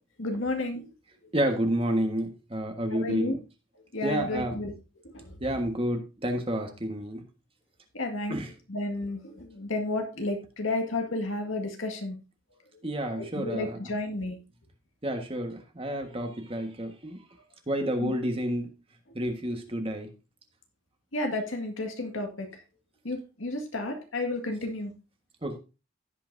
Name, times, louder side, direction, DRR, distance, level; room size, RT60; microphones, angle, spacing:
voice 1, 0.2-0.9 2.9-3.3 3.9-4.7 5.1-5.3 7.9-8.4 8.7-12.2 13.2-14.4 18.0-18.1 21.1-22.5 23.0-24.9, left 2 dB, 90° left, 3 dB, 2.0 m, -32 dB
voice 2, 1.3-3.4 4.0-4.6 5.4-7.2 8.3-8.5 12.8-13.8 15.0-17.2 17.7-18.7 19.1-20.1 25.4-25.6, right 1 dB, 30° right, 4 dB, 1.5 m, -30 dB
16.0 x 5.7 x 2.7 m, 0.31 s
head